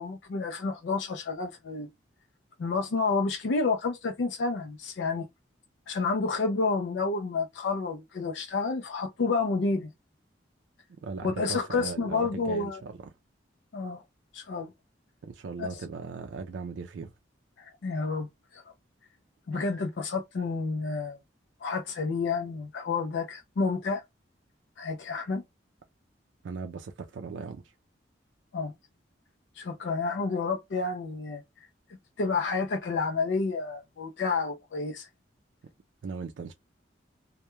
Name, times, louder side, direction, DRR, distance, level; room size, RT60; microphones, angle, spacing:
voice 1, 0.0-1.9 2.6-5.3 5.9-9.9 11.2-12.8 13.7-14.0 14.3-14.7 15.6-15.8 17.6-18.3 18.5-18.6 19.5-21.2 21.6-24.0 24.8-25.4 28.5-28.7 29.6-31.7 32.2-35.1, left 4 dB, 70° left, 0.4 m, -30 dB
voice 2, 11.0-13.1 15.2-17.1 19.5-19.8 26.4-27.6 36.0-36.5, right 4 dB, 80° right, 0.4 m, -38 dB
2.2 x 2.1 x 2.8 m
head